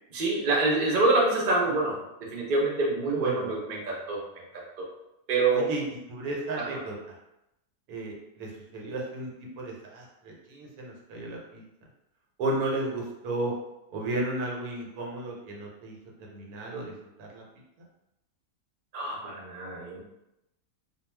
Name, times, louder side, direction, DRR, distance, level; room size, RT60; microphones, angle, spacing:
voice 1, 0.1-4.9 5.3-5.7 6.6-6.8 18.9-20.0, right 3 dB, 50° right, -4 dB, 0.6 m, -27 dB
voice 2, 3.1-3.5 5.5-6.9 7.9-9.3 9.6-11.6 12.4-13.5 13.9-16.0 16.3-16.9 17.2-17.4, right 2 dB, 80° right, -1 dB, 1.1 m, -33 dB
2.3 x 2.3 x 3.1 m, 0.87 s
omnidirectional pair, 1.6 m